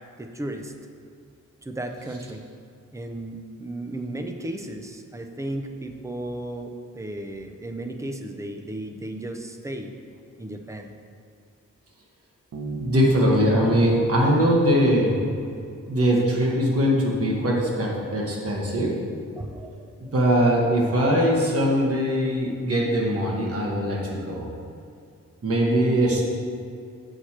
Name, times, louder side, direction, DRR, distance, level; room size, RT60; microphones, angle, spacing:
voice 1, 0.2-0.7 1.6-2.5 2.9-9.9 10.4-10.9 19.4-20.1, right 1 dB, 10° right, 5 dB, 0.4 m, -34 dB
Bass guitar, 12.5-16.1, right 4 dB, 70° right, 0.9 m, -37 dB
voice 2, 12.7-15.2 15.9-19.0 20.1-24.5 25.4-26.2, equal, 50° right, -3 dB, 1.3 m, -21 dB
6.4 x 6.2 x 4.3 m, 2.4 s
wide cardioid pair, 160°, 31 cm